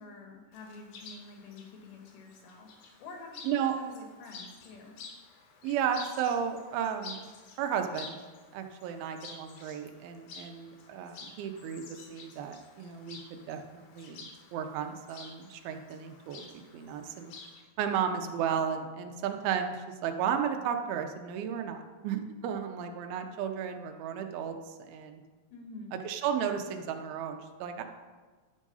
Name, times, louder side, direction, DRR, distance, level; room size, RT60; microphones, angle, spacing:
voice 1, 0.0-2.7 3.0-5.0 25.5-26.0, left 3 dB, 90° left, 2 dB, 3.2 m, -48 dB
Chirp tweet, 0.5-17.6, left 4 dB, 70° left, 1.9 m, -50 dB
voice 2, 3.4-3.7 5.6-7.3 7.6-8.2 8.5-16.4 16.7-17.3 17.8-24.5 24.8-25.2 26.0-27.8, right 8 dB, 85° right, 5 dB, 2.6 m, -33 dB
10.5 x 3.7 x 5.4 m, 1.3 s
omnidirectional pair, 4.2 m